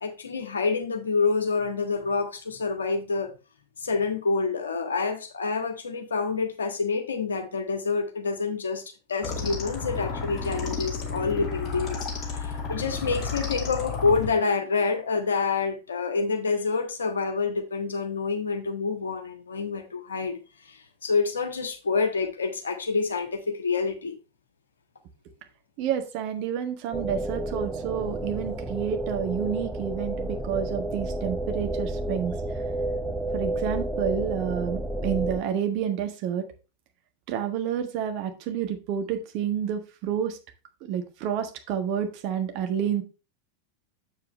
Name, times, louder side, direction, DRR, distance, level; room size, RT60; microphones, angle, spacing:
voice 1, 0.0-3.3 3.8-8.8 9.1-12.0 12.3-20.4 20.7-24.1, left 4 dB, 70° left, 1.5 m, -27 dB
sound 1, 9.2-14.3, left 4 dB, 25° left, 2.3 m, -32 dB
voice 2, 25.8-32.3 33.3-36.4 37.3-40.4 40.8-43.0, right 8 dB, 45° right, 1.4 m, -29 dB
sound 2, 26.9-35.4, right 1 dB, 5° right, 0.8 m, -30 dB
7.4 x 7.0 x 3.1 m
figure-of-eight pair, 90°, 0 cm